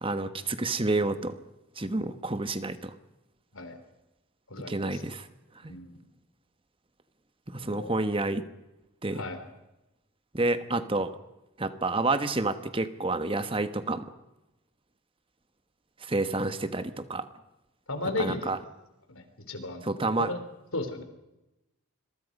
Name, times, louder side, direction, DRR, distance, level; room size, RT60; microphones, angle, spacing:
voice 1, 0.0-1.3 1.8-2.9 4.7-5.3 5.6-5.7 7.5-8.4 9.0-9.2 10.3-11.1 11.6-14.1 16.0-17.2 18.2-18.6 19.8-20.3, right 2 dB, 25° right, 11 dB, 1.2 m, -29 dB
voice 2, 4.5-5.0 5.7-6.0 7.6-8.0 9.1-9.4 17.9-18.5 19.1-19.8 20.2-20.4 20.7-21.0, left 2 dB, 70° left, 7 dB, 3.8 m, -35 dB
26.0 x 23.0 x 5.4 m, 0.96 s
head